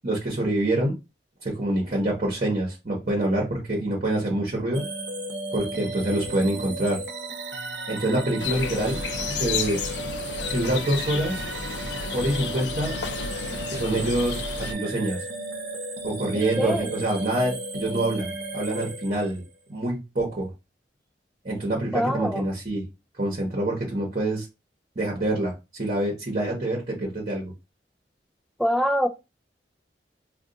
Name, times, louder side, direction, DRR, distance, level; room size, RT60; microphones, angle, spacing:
voice 1, 0.0-1.0 1.4-4.8 5.5-7.0 7.9-9.0 9.4-9.8 10.5-11.4 12.1-13.0 13.7-15.2 16.0-19.4 19.7-20.5 21.4-22.8 23.2-24.4 25.0-27.5, right 1 dB, 40° right, 1.0 m, -26 dB
sound 1, 4.7-19.5, right 2 dB, 75° right, 0.8 m, -35 dB
sound 2, 8.4-14.7, left 5 dB, 70° left, 0.4 m, -32 dB
voice 2, 16.6-16.9 21.9-22.4 28.6-29.1, equal, ahead, 0.3 m, -24 dB
2.5 x 2.3 x 3.7 m
head